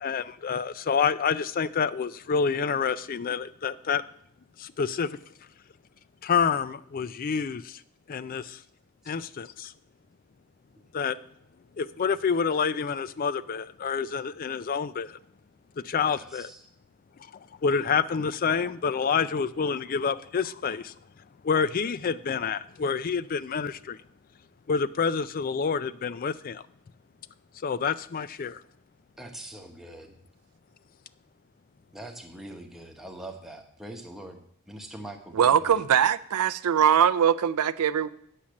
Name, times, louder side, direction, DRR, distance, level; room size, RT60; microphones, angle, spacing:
voice 1, 0.0-4.0 4.6-5.1 6.2-7.8 8.1-8.6 9.1-9.7 10.9-11.2 11.8-15.2 15.8-16.5 17.6-20.9 21.4-24.0 24.7-26.6 27.6-28.6, left 6 dB, 40° left, 0.3 m, -28 dB
voice 2, 16.0-16.6 29.2-30.1 31.9-34.4 34.7-35.7, right 1 dB, ahead, 1.0 m, -43 dB
voice 3, 35.3-38.1, right 8 dB, 90° right, 0.4 m, -22 dB
8.7 x 7.2 x 6.3 m
head